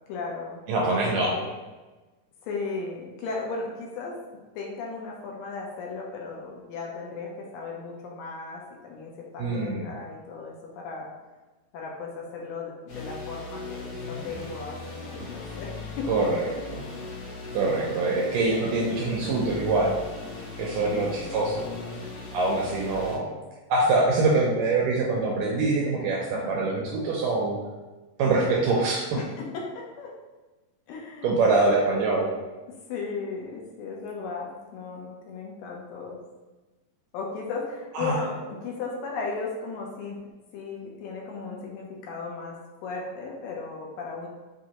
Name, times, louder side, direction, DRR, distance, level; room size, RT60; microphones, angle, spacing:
voice 1, 0.1-0.6 0.9-1.5 2.4-4.2 4.6-11.1 11.7-16.1 16.5-16.6 20.7-21.4 22.5-22.9 26.3-26.6 29.1-30.2 30.9-31.4 32.7-36.2 37.1-44.3, left 4 dB, 80° left, -1 dB, 2.2 m, -36 dB
voice 2, 0.7-1.3 9.4-9.9 16.1-16.8 17.5-19.9 20.6-21.7 22.3-23.3 23.7-27.6 28.2-29.1 31.2-32.3 38.0-38.1, right 3 dB, 80° right, -2 dB, 1.9 m, -24 dB
sound 1, 12.9-23.2, left 3 dB, 60° left, 2.0 m, -38 dB
6.0 x 2.6 x 2.8 m, 1.2 s
omnidirectional pair, 4.1 m